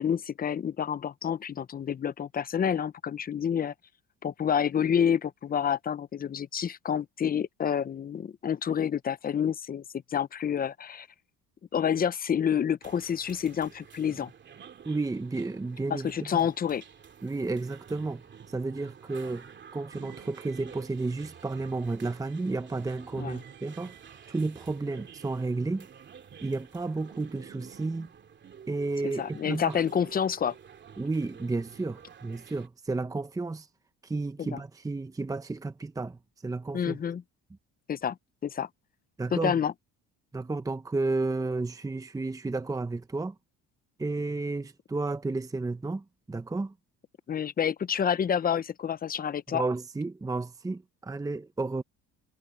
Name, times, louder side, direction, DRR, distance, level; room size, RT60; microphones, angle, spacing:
voice 1, 0.0-3.7 4.2-9.8 10.1-11.1 11.7-14.3 15.9-16.8 23.2-23.4 29.0-30.5 34.4-34.6 36.7-37.2 37.9-38.2 38.4-38.7 39.3-39.7 47.3-49.6, left 8 dB, 30° left, 0.7 m, -28 dB
sound 1, 12.8-32.7, right 7 dB, 40° right, 2.6 m, -50 dB
voice 2, 14.8-16.4 17.2-19.5 19.7-23.9 24.3-25.9 26.4-28.1 28.7-29.8 31.0-33.7 34.0-37.0 39.2-39.5 40.3-43.3 44.0-46.7 49.5-51.8, right 3 dB, 10° right, 0.9 m, -32 dB
cardioid pair, 110°, 30 cm